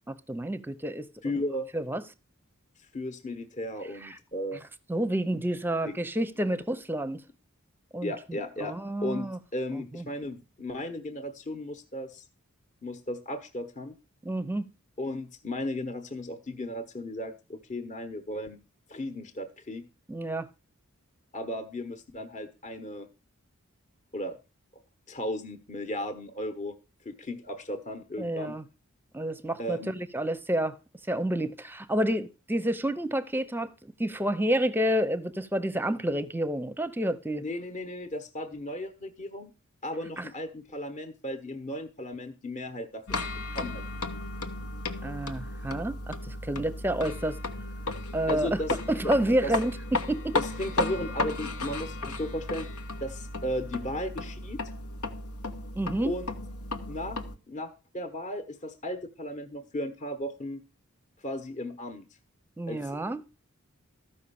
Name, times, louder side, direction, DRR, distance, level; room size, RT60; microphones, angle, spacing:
voice 1, 0.1-1.4 1.7-2.0 4.0-4.2 4.9-7.2 7.9-9.4 9.7-10.1 14.2-14.7 20.1-20.5 28.2-28.6 29.1-30.8 31.1-37.4 40.2-40.3 45.0-47.4 48.1-48.5 48.9-50.4 55.7-56.1 62.6-63.2, right 1 dB, 10° right, 0.7 m, -29 dB
voice 2, 1.2-1.7 2.9-4.6 5.8-6.0 8.0-8.8 9.0-12.2 12.8-13.9 15.0-18.6 18.9-19.8 21.3-23.1 24.1-24.4 25.1-26.7 27.0-28.6 29.6-30.0 37.4-39.5 39.8-44.0 48.3-48.7 49.0-49.1 49.4-49.5 50.3-52.7 53.0-54.6 56.0-56.3 56.9-57.2 57.5-60.6 61.2-62.0 62.7-63.0, left 1 dB, 35° left, 1.1 m, -35 dB
sound 1, 43.1-57.4, left 2 dB, 90° left, 1.2 m, -34 dB
13.5 x 5.6 x 6.9 m
head